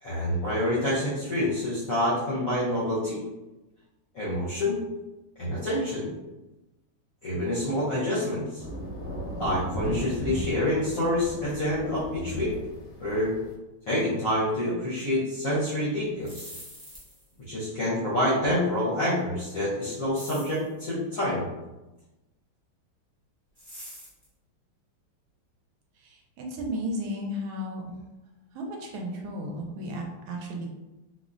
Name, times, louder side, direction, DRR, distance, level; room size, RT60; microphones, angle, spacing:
voice 1, 0.0-3.2 4.1-4.8 5.4-6.1 7.2-8.6 9.4-12.5 13.0-13.3 13.9-16.5 17.5-21.4, left 1 dB, 65° left, -8 dB, 0.8 m, -27 dB
sound 1, 8.6-13.6, equal, 90° left, 1.5 m, -36 dB
sound 2, 16.1-17.3 20.1-20.7 23.6-24.3, equal, 20° left, 0.5 m, -44 dB
voice 2, 26.0-27.8 28.5-30.7, equal, 75° right, 1 dB, 1.3 m, -34 dB
3.7 x 2.1 x 2.4 m, 1.0 s
omnidirectional pair, 2.4 m